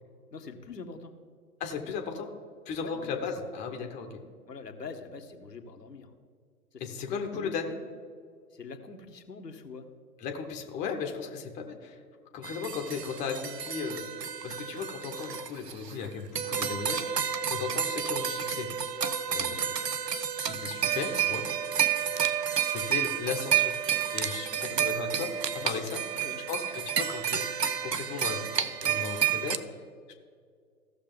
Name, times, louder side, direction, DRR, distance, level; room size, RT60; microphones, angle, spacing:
voice 1, 0.3-1.1 2.8-3.1 4.5-6.1 6.7-6.8 7.3-7.6 8.5-9.9 12.3-12.5 19.4-19.6 22.0-22.3 25.6-26.4, left 4 dB, 85° left, 4 dB, 1.1 m, -44 dB
voice 2, 1.6-2.3 2.7-4.2 6.8-7.7 10.2-12.0 12.3-14.0 14.4-18.7 19.3-19.7 20.1-21.5 22.6-23.7 24.1-26.0 26.5-27.5 27.8-29.8, left 6 dB, 15° left, 4 dB, 0.7 m, -36 dB
sound 1, 12.4-16.1 16.4-29.6, right 8 dB, 85° right, 0.7 m, -30 dB
16.0 x 6.4 x 3.8 m, 2.1 s
figure-of-eight pair, 115°, 47 cm